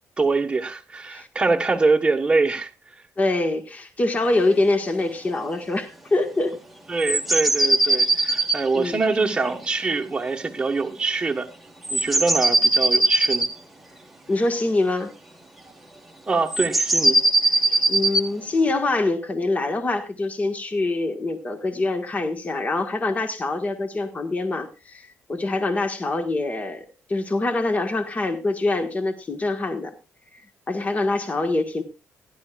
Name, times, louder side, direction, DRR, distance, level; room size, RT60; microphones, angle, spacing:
voice 1, 0.2-2.7 6.9-11.5 11.9-13.5 16.3-17.2, right 3 dB, 20° right, 1.5 m, -24 dB
voice 2, 3.2-6.6 8.2-8.3 8.7-9.0 14.3-15.1 17.7-29.9 30.7-31.8, left 2 dB, 25° left, 1.7 m, -24 dB
sound 1, 7.0-9.8 11.8-13.5 16.5-18.3, right 2 dB, 5° right, 1.6 m, -20 dB
17.0 x 11.5 x 2.5 m
cardioid pair, 110°, 5 cm